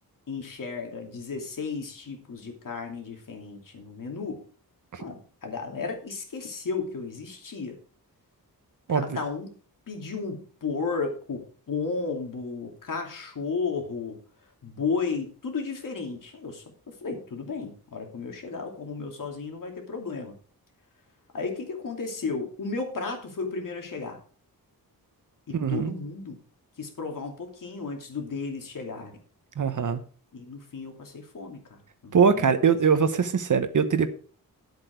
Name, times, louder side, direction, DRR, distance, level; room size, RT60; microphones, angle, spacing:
voice 1, 0.3-4.5 5.0-7.8 8.9-9.5 9.9-14.2 14.6-20.3 21.3-24.2 25.5-26.4 26.8-29.2 30.3-32.5 32.9-33.0, left 4 dB, 60° left, 2.7 m, -34 dB
voice 2, 25.5-25.9 29.6-30.0 32.1-34.1, right 6 dB, 55° right, 1.1 m, -22 dB
10.0 x 8.1 x 4.6 m
wide cardioid pair, 130°, 37 cm